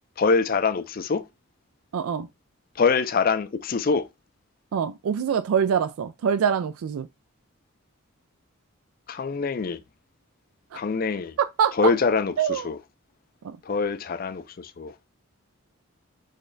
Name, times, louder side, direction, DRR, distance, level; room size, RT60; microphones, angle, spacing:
voice 1, 0.2-1.2 2.8-4.1 9.1-9.8 10.7-11.3 11.8-12.8 13.7-14.9, left 4 dB, 40° left, 0.4 m, -24 dB
voice 2, 1.9-2.3 4.7-7.1 10.7-10.8 11.4-11.9 12.4-12.7 13.4-13.6, right 7 dB, 75° right, 0.3 m, -24 dB
6.4 x 3.2 x 2.6 m
head